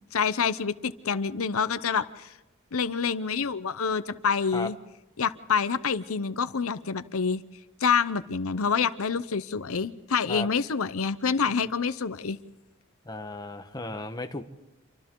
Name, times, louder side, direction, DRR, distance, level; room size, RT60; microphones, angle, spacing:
voice 1, 0.1-2.3 2.7-4.8 5.2-7.4 7.8-12.4, left 6 dB, 85° left, 14 dB, 0.7 m, -27 dB
voice 2, 13.0-14.4, left 2 dB, 20° left, 6 dB, 1.2 m, -35 dB
28.0 x 24.5 x 3.8 m, 0.98 s
head